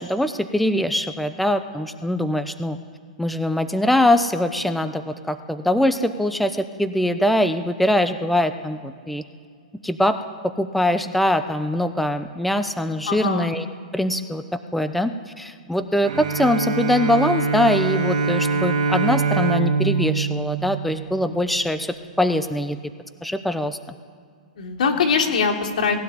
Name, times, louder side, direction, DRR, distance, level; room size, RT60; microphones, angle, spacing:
voice 1, 0.0-2.8 3.2-9.2 9.8-10.2 10.4-13.7 13.9-22.8 23.2-23.8, left 1 dB, ahead, 9 dB, 0.9 m, -22 dB
voice 2, 13.1-13.5 24.6-26.0, left 5 dB, 70° left, 3 dB, 3.5 m, -22 dB
Bowed string instrument, 16.0-21.4, right 4 dB, 60° right, 3.2 m, -23 dB
19.5 x 16.5 x 8.9 m, 2.1 s
hypercardioid pair, 130°, 4 cm